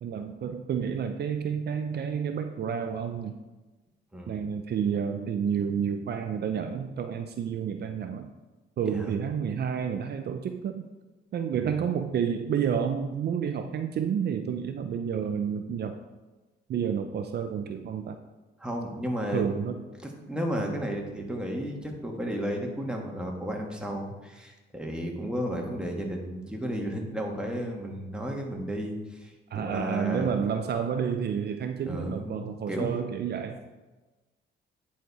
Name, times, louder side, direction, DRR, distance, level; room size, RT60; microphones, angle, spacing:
voice 1, 0.0-3.3 4.3-8.3 8.8-10.9 11.3-16.0 16.7-18.2 19.3-19.8 20.6-20.7 29.5-33.6, right 7 dB, 55° right, 7 dB, 0.5 m, -30 dB
voice 2, 4.1-4.4 8.9-9.1 11.5-11.6 18.6-19.7 20.0-30.3 31.8-33.0, equal, 5° right, 0 dB, 1.5 m, -33 dB
9.2 x 4.2 x 4.7 m, 1.2 s
cardioid pair, 90°, 20 cm